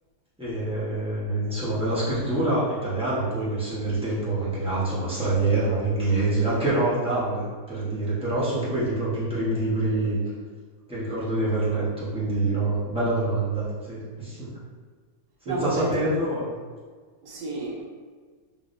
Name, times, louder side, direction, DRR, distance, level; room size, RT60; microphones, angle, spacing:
voice 1, 0.4-10.2 10.9-14.5 15.5-16.5, right 2 dB, 5° right, -11 dB, 0.7 m, -26 dB
voice 2, 15.5-16.0 17.2-17.8, right 2 dB, 75° right, -4 dB, 1.2 m, -30 dB
3.5 x 3.2 x 2.6 m, 1.5 s
omnidirectional pair, 1.9 m